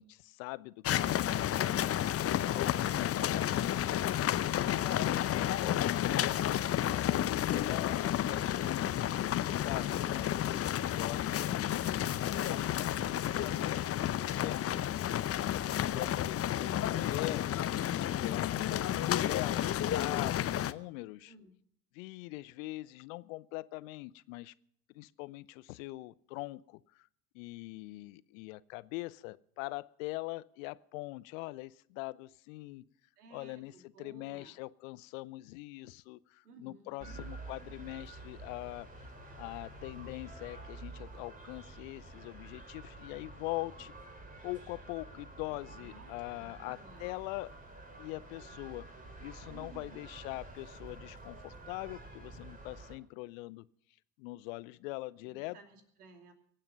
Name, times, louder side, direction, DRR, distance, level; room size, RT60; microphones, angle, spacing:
voice 1, 0.0-3.9 4.6-6.5 6.9-12.0 12.5-14.8 15.4-17.5 17.9-21.3 21.9-24.5 24.9-27.1 27.3-32.8 33.3-38.9 39.4-43.9 44.4-47.5 48.0-48.9 49.2-53.7 54.2-55.6, left 21 dB, 60° left, 19 dB, 0.8 m, -43 dB
sound 1, 0.8-20.7, left 11 dB, 30° left, 0.8 m, -31 dB
voice 2, 21.2-21.6 33.2-34.6 36.4-37.2 45.8-47.1 49.5-50.0 55.3-56.3, right 3 dB, 75° right, 6 dB, 2.8 m, -56 dB
sound 2, 37.0-52.9, right 2 dB, 20° right, 4.1 m, -49 dB
24.0 x 8.9 x 5.4 m, 0.66 s
figure-of-eight pair, 65°, 46 cm